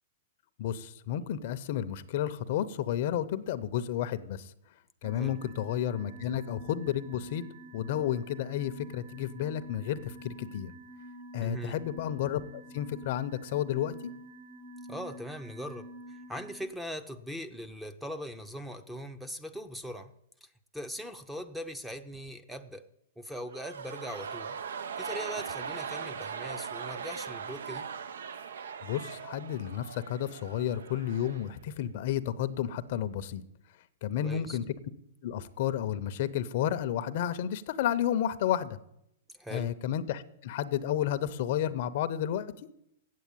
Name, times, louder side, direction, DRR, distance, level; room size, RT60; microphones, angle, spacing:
voice 1, 0.6-4.5 5.0-7.4 7.7-10.7 11.3-13.9 28.8-33.4 34.0-34.6 35.2-38.8 39.5-42.5, left 10 dB, 55° left, 13 dB, 0.6 m, -31 dB
sound 1, 5.0-16.7, right 1 dB, 70° right, 1.6 m, -48 dB
voice 2, 11.4-11.8 14.9-15.9 16.3-20.1 20.4-20.5 20.7-22.8 23.2-24.6 25.0-27.9 34.2-34.6 39.3-39.7, equal, 5° right, 8 dB, 0.6 m, -40 dB
sound 2, 23.5-31.6 31.8-31.9, right 6 dB, 85° right, 0.6 m, -40 dB
8.4 x 7.7 x 9.0 m, 0.78 s
hypercardioid pair, 145°, 0 cm